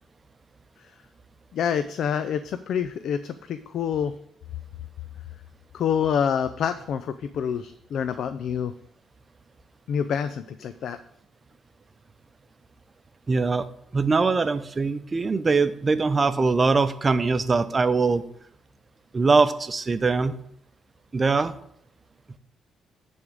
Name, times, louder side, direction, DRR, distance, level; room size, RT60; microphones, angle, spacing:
voice 1, 1.5-4.1 5.7-8.7 9.9-11.0, left 8 dB, 70° left, 11 dB, 0.4 m, -27 dB
voice 2, 13.3-13.7 13.9-18.2 19.1-20.3 21.1-21.5, right 4 dB, 30° right, 11 dB, 0.6 m, -22 dB
10.5 x 3.6 x 6.4 m, 0.70 s
cardioid pair, 90°, 0 cm